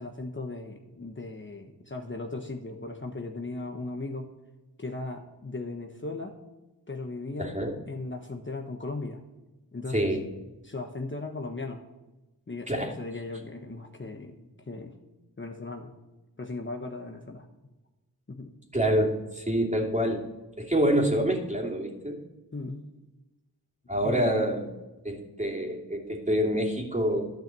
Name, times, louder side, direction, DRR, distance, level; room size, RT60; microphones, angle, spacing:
voice 1, 0.0-4.3 4.8-6.4 6.9-7.6 7.9-9.2 9.7-10.1 10.6-11.8 12.5-14.9 15.4-15.9 16.4-17.5 18.3-18.5 22.5-22.9 24.0-24.3, left 2 dB, 30° left, 4 dB, 1.2 m, -37 dB
voice 2, 7.4-7.8 9.9-10.3 12.7-12.9 18.7-20.2 20.6-22.2 23.9-24.7 25.0-27.2, equal, 15° right, 0 dB, 2.9 m, -26 dB
11.5 x 5.9 x 7.7 m, 1.1 s
cardioid pair, 40°, 41 cm